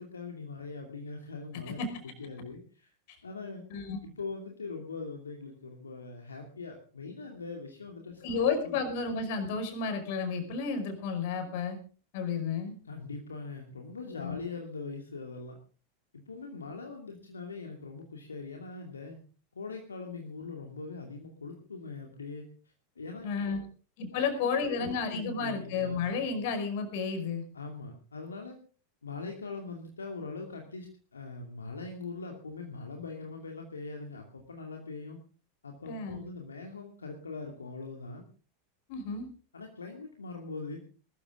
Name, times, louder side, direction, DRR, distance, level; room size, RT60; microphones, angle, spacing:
voice 1, 0.0-2.9 3.2-3.6 4.0-8.8 12.8-15.5 16.1-19.2 19.5-22.5 23.0-23.6 24.1-26.0 27.5-28.6 29.0-35.2 35.6-38.2 39.5-40.8, left 4 dB, 80° left, 3 dB, 2.5 m, -42 dB
voice 2, 8.2-11.8 12.1-12.7 14.2-14.4 23.2-23.6 24.0-27.4 35.9-36.3 38.9-39.3, left 5 dB, 55° left, 7 dB, 5.3 m, -32 dB
21.5 x 13.5 x 3.7 m, 0.38 s
figure-of-eight pair, 90°, 0 cm